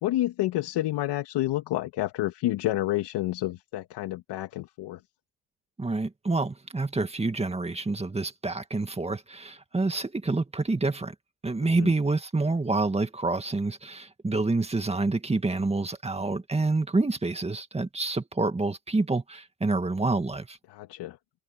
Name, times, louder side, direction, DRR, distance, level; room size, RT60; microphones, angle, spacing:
voice 1, 0.0-5.0 11.6-11.9 20.7-21.2, left 15 dB, 75° left, 2.1 m, -29 dB
voice 2, 5.8-11.1 11.4-20.6, right 3 dB, 15° right, 2.1 m, -27 dB
open air
cardioid pair, 95°, 42 cm